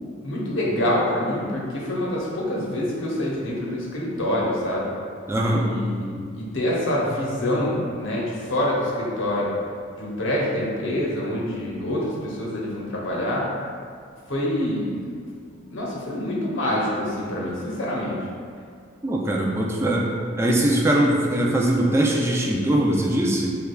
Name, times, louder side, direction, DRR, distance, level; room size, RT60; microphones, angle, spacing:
voice 1, 0.2-4.9 5.6-9.5 10.0-13.5 14.3-15.0 15.5-18.2, left 1 dB, 65° left, -4 dB, 0.8 m, -26 dB
voice 2, 5.3-5.7 19.0-20.1 20.4-23.5, right 1 dB, 10° right, -2 dB, 0.3 m, -21 dB
6.4 x 2.4 x 2.3 m, 2.2 s
head